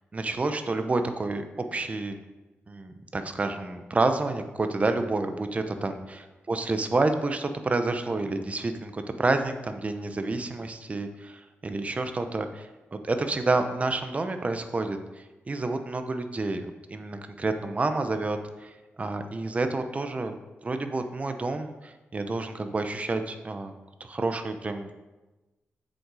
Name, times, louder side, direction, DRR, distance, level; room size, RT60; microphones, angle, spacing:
voice 1, 0.1-2.2 2.7-15.0 15.5-18.7 19.0-20.4 20.6-23.7 24.0-24.9, right 3 dB, 30° right, 8 dB, 0.8 m, -29 dB
7.8 x 6.6 x 4.9 m, 1.1 s
wide cardioid pair, 110°, 4 cm